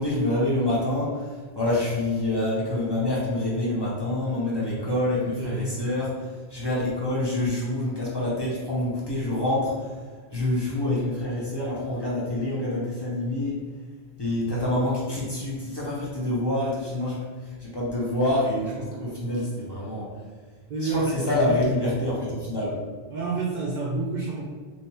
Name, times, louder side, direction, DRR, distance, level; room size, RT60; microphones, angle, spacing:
voice 1, 0.0-10.0 10.3-13.6 14.2-20.2 20.8-22.8, left 1 dB, 25° left, -7 dB, 0.8 m, -27 dB
voice 2, 5.3-5.8 20.7-21.7 23.1-24.4, right 3 dB, 60° right, -3 dB, 0.6 m, -29 dB
3.3 x 3.1 x 2.8 m, 1.4 s
omnidirectional pair, 1.1 m